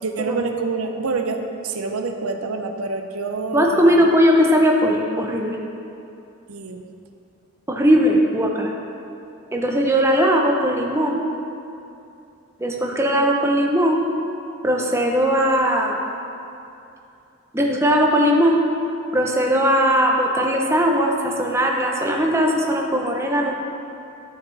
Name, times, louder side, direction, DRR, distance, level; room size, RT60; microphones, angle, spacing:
voice 1, 0.0-4.0 6.5-6.9 23.0-23.1 23.4-23.5, right 4 dB, 90° right, 5 dB, 0.6 m, -27 dB
voice 2, 3.5-5.6 7.7-8.7 9.5-11.2 12.6-14.0 14.6-16.0 17.5-18.6 19.1-23.6, equal, 10° right, 0 dB, 0.7 m, -19 dB
11.5 x 5.7 x 3.3 m, 2.7 s
head